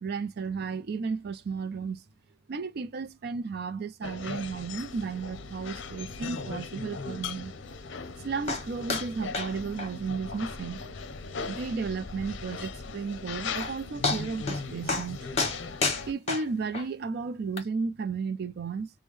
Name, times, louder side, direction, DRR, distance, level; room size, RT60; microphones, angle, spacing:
voice 1, 0.0-2.0 2.5-7.5 8.2-10.8 11.4-15.3 16.1-18.9, right 5 dB, 60° right, 0.4 m, -33 dB
sound 1, 4.0-16.1, left 4 dB, 80° left, 0.6 m, -39 dB
sound 2, 8.5-8.6 8.9-9.1 9.3-9.5 9.8-9.9 10.3-10.4 10.8-10.9 11.4-11.5 13.2-13.3 13.6-13.7 14.0-14.6 14.9-15.1 15.4-16.9 17.6-17.7, left 3 dB, 35° left, 1.4 m, -29 dB
3.5 x 2.1 x 3.2 m
head